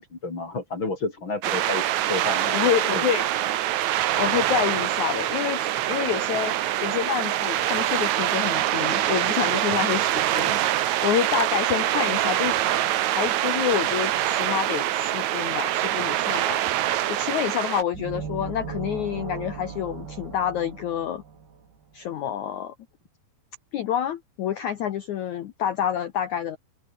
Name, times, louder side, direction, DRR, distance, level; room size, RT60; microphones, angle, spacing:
voice 1, 0.0-1.8 2.1-3.0, left 3 dB, 30° left, 4.2 m, -31 dB
sound 1, 1.4-17.8, right 13 dB, 85° right, 1.6 m, -24 dB
voice 2, 2.5-3.3 4.2-6.5 6.8-10.6 11.0-12.5 13.1-16.6 17.1-21.2 21.9-22.8 23.7-26.6, left 10 dB, 75° left, 1.7 m, -28 dB
sound 2, 17.9-21.7, right 6 dB, 60° right, 6.5 m, -37 dB
open air
omnidirectional pair, 5.0 m